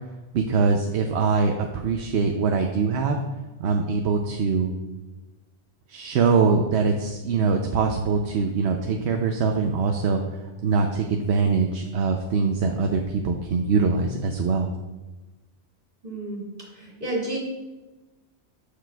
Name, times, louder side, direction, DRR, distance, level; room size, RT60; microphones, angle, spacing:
voice 1, 0.3-3.2 3.6-4.7 5.9-10.2 10.6-14.7, right 5 dB, 80° right, 3 dB, 0.9 m, -23 dB
voice 2, 16.0-17.4, right 1 dB, 50° right, -4 dB, 2.4 m, -31 dB
13.5 x 5.0 x 2.3 m, 1.1 s
omnidirectional pair, 1.1 m